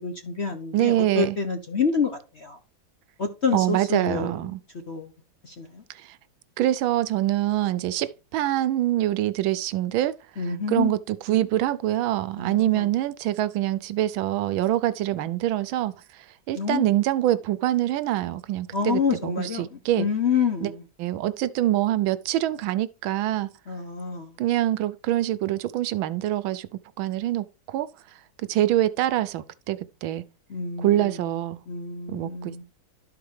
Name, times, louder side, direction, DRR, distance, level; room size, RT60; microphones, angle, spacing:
voice 1, 0.0-2.6 3.2-4.4 4.7-5.1 5.4-5.8 10.4-10.9 12.4-12.9 16.6-16.9 18.7-20.8 23.7-24.4 30.5-31.3 31.7-32.6, left 5 dB, 45° left, 0.8 m, -28 dB
voice 2, 0.7-1.4 3.5-4.6 5.9-6.2 6.6-20.1 20.6-20.7 21.0-23.5 24.4-27.9 28.4-30.2 30.8-31.6 32.1-32.6, right 13 dB, 80° right, 1.4 m, -25 dB
12.5 x 4.7 x 3.3 m
omnidirectional pair, 2.2 m